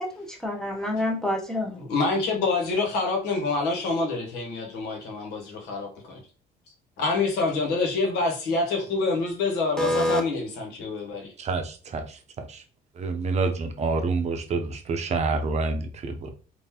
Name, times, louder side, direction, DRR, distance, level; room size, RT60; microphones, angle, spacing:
voice 1, 0.0-1.8 9.8-10.2, left 1 dB, 5° left, 0.9 m, -27 dB
voice 2, 1.8-6.2 7.0-11.3, left 3 dB, 90° left, 1.2 m, -26 dB
voice 3, 11.4-12.6 13.0-16.3, right 4 dB, 40° right, 0.7 m, -28 dB
3.6 x 2.6 x 2.9 m
cardioid pair, 110°, 17 cm